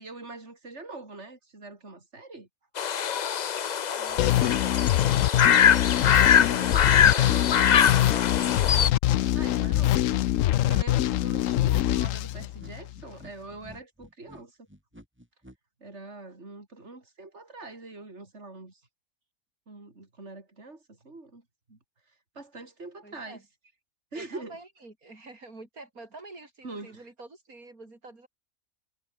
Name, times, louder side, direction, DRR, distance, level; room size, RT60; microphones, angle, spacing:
voice 1, 0.0-2.5 6.0-7.4 9.3-14.7 15.8-18.8 19.7-21.4 21.7-21.8 22.3-23.4 24.1-24.6 26.6-27.1, right 3 dB, 50° right, 4.6 m, -43 dB
sound 1, 2.8-8.9, left 8 dB, 55° left, 0.4 m, -23 dB
voice 2, 3.9-4.7 6.3-8.6 23.0-23.4 24.1-28.3, right 2 dB, 80° right, 4.9 m, -47 dB
sound 2, 4.2-13.0, left 14 dB, 70° left, 0.9 m, -24 dB
sound 3, 12.0-15.6, equal, 5° right, 7.8 m, -50 dB
omnidirectional pair, 1.5 m